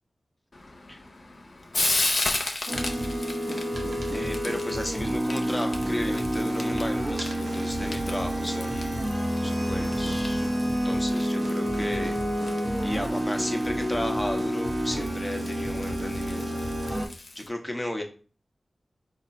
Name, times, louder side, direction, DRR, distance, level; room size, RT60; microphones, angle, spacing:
Frying (food), 0.5-17.5, left 2 dB, 60° left, 0.7 m, -36 dB
sound 1, 2.5-6.5 6.8-9.5, right 2 dB, 80° right, 0.7 m, -48 dB
sound 2, 2.7-17.1, equal, 55° right, 1.1 m, -28 dB
voice 1, 4.1-9.1 9.4-12.2 12.8-16.9 17.3-18.0, left 1 dB, 15° left, 3 dB, 1.0 m, -34 dB
4.3 x 2.5 x 4.1 m, 0.39 s
cardioid pair, 40°, 0 cm